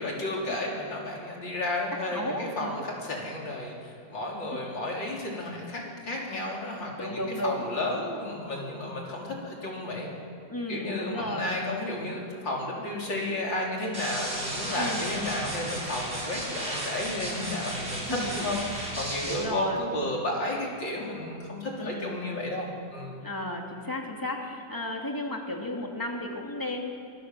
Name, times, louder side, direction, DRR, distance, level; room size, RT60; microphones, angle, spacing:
voice 1, 0.0-10.1 10.7-23.2, left 1 dB, 75° left, -2 dB, 4.9 m, -32 dB
voice 2, 2.1-2.8 4.6-4.8 7.0-7.7 10.5-11.5 14.8-15.1 18.1-18.5 19.2-19.8 21.8-22.2 23.2-26.9, left 1 dB, 10° left, 0 dB, 2.7 m, -34 dB
sound 1, 13.9-19.4, right 1 dB, 30° right, 6.9 m, -34 dB
24.0 x 16.5 x 7.7 m, 2.4 s
omnidirectional pair, 2.0 m